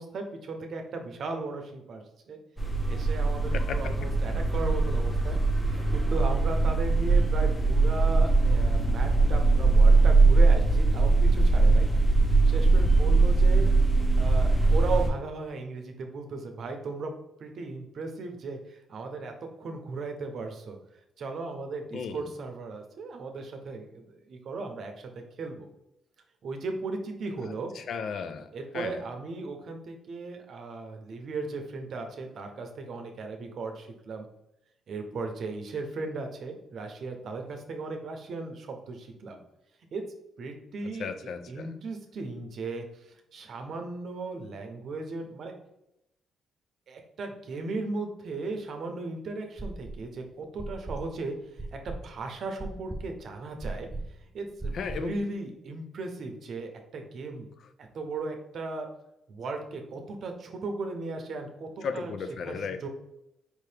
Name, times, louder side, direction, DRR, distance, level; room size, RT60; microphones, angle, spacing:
voice 1, 0.0-2.4 2.9-5.4 5.6-11.9 12.5-13.7 14.2-17.1 17.4-20.8 21.2-25.7 26.4-27.7 28.5-34.3 34.9-39.4 39.9-40.0 40.4-41.1 41.5-45.5 46.9-53.9 54.2-57.4 57.8-58.9 59.3-62.1 62.5-62.9, right 3 dB, 60° right, 4 dB, 0.7 m, -36 dB
sound 1, 2.6-15.1, right 3 dB, 15° left, 0.9 m, -21 dB
voice 2, 3.5-3.9 21.9-22.3 27.8-28.5 28.7-29.0 41.0-41.7 54.7-55.2 61.8-62.9, left 5 dB, 65° left, 10 dB, 0.4 m, -35 dB
sound 2, 49.6-50.2 50.6-55.2, right 2 dB, 15° right, 0.4 m, -38 dB
4.6 x 2.8 x 3.3 m, 0.85 s
cardioid pair, 90°, 0 cm